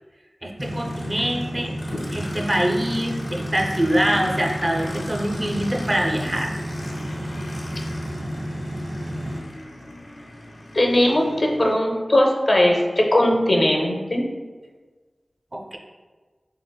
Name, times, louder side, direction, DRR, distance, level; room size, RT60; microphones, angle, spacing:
voice 1, 0.4-1.8 2.1-6.5 15.5-15.8, right 1 dB, 30° right, 0 dB, 0.4 m, -24 dB
Aircraft, 0.6-11.7, left 1 dB, 85° left, 0.8 m, -38 dB
sound 1, 0.6-9.4, equal, 70° right, 1.3 m, -31 dB
voice 2, 10.7-14.2, left 1 dB, 55° left, 0 dB, 0.5 m, -19 dB
3.7 x 3.3 x 2.2 m, 1.4 s
wide cardioid pair, 45°, 0 cm